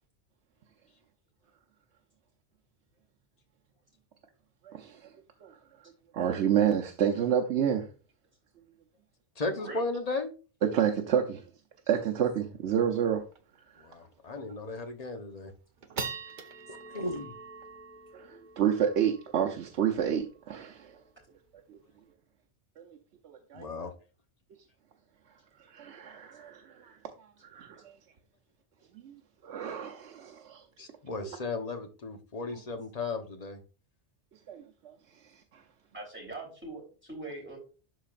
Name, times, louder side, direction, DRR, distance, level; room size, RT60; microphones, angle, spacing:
voice 1, 4.6-5.1 5.4-5.6 6.1-7.9 10.6-11.4 11.9-13.2 18.1-21.0 21.7-21.8 22.8-22.9 23.2-23.6 25.7-27.0 27.4-27.8 29.0-29.1 29.4-30.6 31.2-31.3 34.5-34.9, right 9 dB, 85° right, 1.0 m, -29 dB
voice 2, 9.4-10.3 13.8-15.5 16.7-17.3 23.5-23.9 30.8-33.6, left 3 dB, 40° left, 1.0 m, -35 dB
sound 1, 12.5-12.6 12.8-12.9 13.3-13.6 14.0-14.1 14.7-15.1 15.5-22.1, right 4 dB, 50° right, 0.8 m, -44 dB
voice 3, 35.9-37.6, right 2 dB, 10° right, 3.2 m, -42 dB
12.0 x 4.1 x 2.5 m
omnidirectional pair, 1.1 m